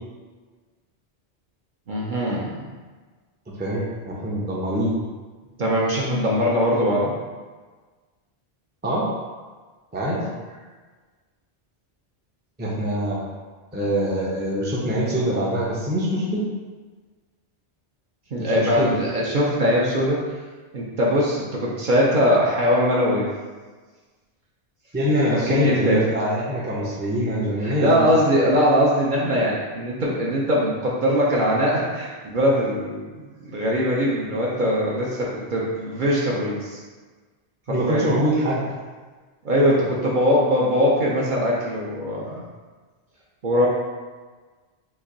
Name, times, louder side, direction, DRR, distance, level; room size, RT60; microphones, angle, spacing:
voice 1, 1.9-2.6 5.6-7.1 10.2-10.3 18.3-20.2 20.7-23.3 25.3-26.0 27.6-36.8 37.7-38.1 39.4-42.4 43.4-43.7, equal, 55° right, -5 dB, 0.7 m, -21 dB
voice 2, 3.6-4.9 8.8-9.0 9.9-10.2 12.6-13.2 13.7-16.4 18.4-18.9 24.9-28.1 37.7-38.6, equal, 15° right, -5 dB, 0.4 m, -24 dB
3.0 x 2.6 x 3.7 m, 1.4 s
omnidirectional pair, 1.1 m